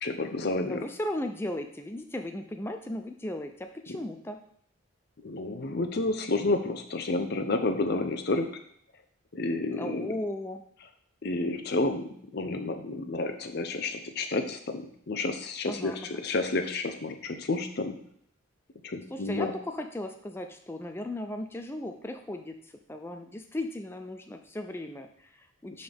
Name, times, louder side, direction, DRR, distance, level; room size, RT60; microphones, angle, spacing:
voice 1, 0.0-0.8 5.2-8.5 9.3-10.1 11.2-18.0 18.8-19.5, left 2 dB, 50° left, 6 dB, 0.7 m, -30 dB
voice 2, 0.7-4.4 9.7-10.6 15.7-16.2 19.1-22.5 22.9-25.8, left 1 dB, 10° left, 5 dB, 0.4 m, -36 dB
11.0 x 3.9 x 3.5 m, 0.66 s
head